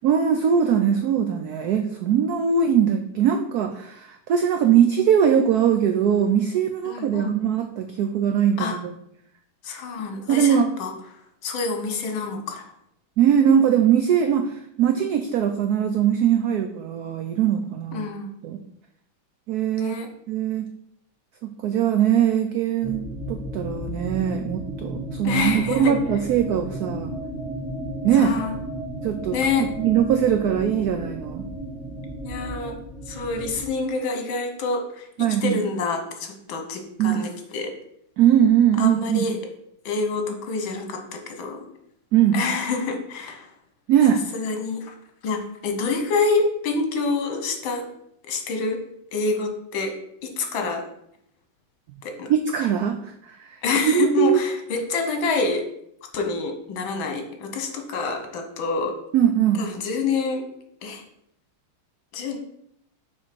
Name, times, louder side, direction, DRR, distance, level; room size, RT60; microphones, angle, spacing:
voice 1, 0.0-8.9 10.3-10.8 13.2-18.0 18.4-18.6 19.5-20.0 20.3-20.7 21.4-27.1 28.0-28.3 29.0-31.5 35.2-35.6 37.0-37.2 38.2-39.3 42.1-42.5 43.9-44.2 52.3-53.6 53.9-54.4 59.1-59.7, right 8 dB, 90° right, 7 dB, 0.8 m, -21 dB
voice 2, 6.9-7.4 8.6-8.8 9.6-10.9 11.4-12.7 17.9-18.3 19.8-20.1 25.2-25.9 28.2-28.6 29.3-29.7 32.2-32.8 33.1-35.1 35.4-37.7 38.8-39.4 39.9-41.6 42.3-43.5 44.3-44.9 45.2-47.9 48.3-48.8 49.1-50.0 50.2-50.8 52.0-52.3 53.6-55.7 56.1-59.0 59.6-60.5 60.8-61.0 62.1-62.4, left 4 dB, 70° left, 4 dB, 1.8 m, -27 dB
sound 1, 22.8-33.6, right 1 dB, 5° right, 0.4 m, -34 dB
6.4 x 3.9 x 5.9 m, 0.74 s
omnidirectional pair, 2.3 m